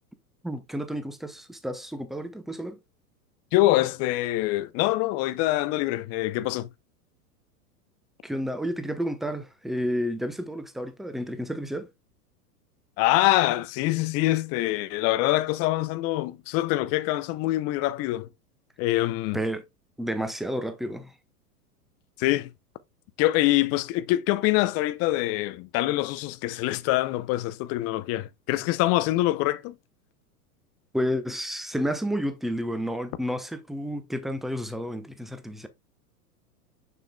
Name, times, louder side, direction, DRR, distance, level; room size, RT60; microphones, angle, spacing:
voice 1, 0.4-2.8 8.2-11.9 19.3-19.6 20.0-21.1 30.9-35.7, equal, ahead, 0.8 m, -31 dB
voice 2, 3.5-6.7 13.0-18.3 18.8-19.4 22.2-22.5 23.2-29.7, left 16 dB, 30° left, 0.6 m, -25 dB
6.7 x 6.7 x 2.2 m
hypercardioid pair, 100°, 47 cm